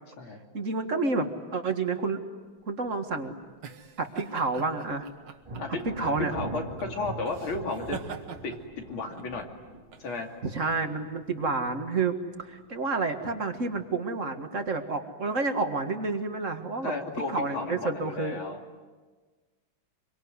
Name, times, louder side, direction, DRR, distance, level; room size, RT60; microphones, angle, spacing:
voice 1, 0.5-2.2 2.7-3.3 4.0-5.1 5.9-6.3 10.4-16.9 17.3-18.4, right 3 dB, 40° right, 6 dB, 2.0 m, -29 dB
sound 1, 2.6-11.8, right 6 dB, 60° right, 2.0 m, -45 dB
Thunder, 5.4-11.9 12.2-12.8 13.3-14.1, right 2 dB, 15° right, 2.3 m, -42 dB
voice 2, 5.6-8.0 8.4-9.5 10.0-10.3 16.8-18.6, left 3 dB, 75° left, 2 dB, 3.6 m, -34 dB
25.5 x 24.0 x 9.7 m, 1.3 s
omnidirectional pair, 2.3 m